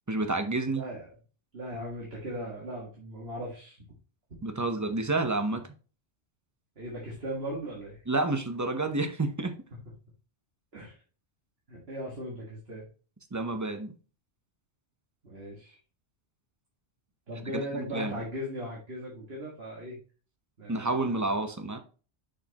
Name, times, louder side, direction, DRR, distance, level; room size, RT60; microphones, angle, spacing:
voice 1, 0.1-0.8 4.4-5.7 8.1-9.5 13.3-13.9 17.5-18.1 20.7-21.8, right 2 dB, 20° right, 7 dB, 0.6 m, -29 dB
voice 2, 0.7-1.1 1.5-3.8 6.8-8.0 10.7-11.0 11.7-12.8 15.2-15.8 17.3-20.0 20.6-21.3, equal, 60° right, -3 dB, 1.9 m, -38 dB
6.4 x 6.2 x 2.9 m, 0.37 s
omnidirectional pair, 1.2 m